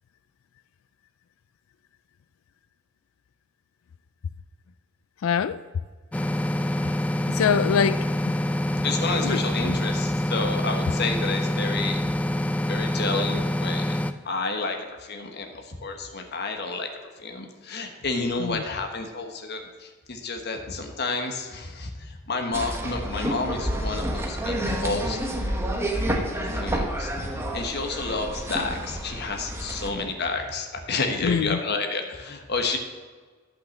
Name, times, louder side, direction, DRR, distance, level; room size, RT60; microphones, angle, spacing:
voice 1, 5.2-5.6 7.3-8.4 9.2-9.8 18.4-18.6 31.2-31.6, left 7 dB, 90° left, 0.4 m, -25 dB
sound 1, 6.1-14.1, left 1 dB, 5° left, 0.4 m, -26 dB
voice 2, 8.8-12.1 12.7-14.0 14.2-16.9 17.2-25.2 26.5-32.8, left 3 dB, 55° left, 1.3 m, -30 dB
sound 2, 22.5-29.9, right 1 dB, 15° right, 1.1 m, -29 dB
11.5 x 5.9 x 6.4 m
head